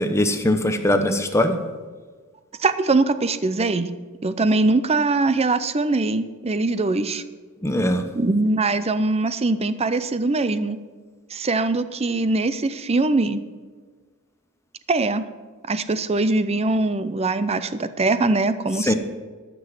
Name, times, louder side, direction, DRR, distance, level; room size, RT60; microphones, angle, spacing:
voice 1, 0.0-1.5 7.6-8.0 18.9-19.0, left 1 dB, 15° left, 7 dB, 0.8 m, -20 dB
voice 2, 2.6-3.9 4.2-7.2 8.1-10.8 11.3-13.4 14.9-15.2 15.7-18.9, right 3 dB, 30° right, 13 dB, 0.6 m, -22 dB
12.5 x 6.1 x 7.6 m, 1.4 s
head